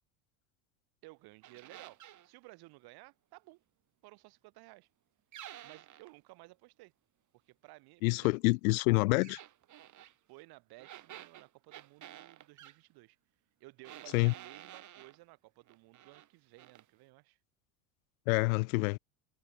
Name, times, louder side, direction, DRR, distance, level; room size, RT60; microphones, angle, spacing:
voice 1, 1.0-3.6 4.0-4.9 5.6-6.9 7.5-8.3 10.3-13.2 13.6-17.4, right 22 dB, 60° right, 2.1 m, -56 dB
sound 1, 1.4-2.3 5.3-6.1 9.2-10.1 10.8-12.8 13.8-15.2 15.7-16.3 16.6-16.9, right 12 dB, 40° right, 3.2 m, -51 dB
voice 2, 8.0-9.4 14.1-14.3 18.3-19.0, left 26 dB, 75° left, 0.5 m, -27 dB
supercardioid pair, 100°, 43 cm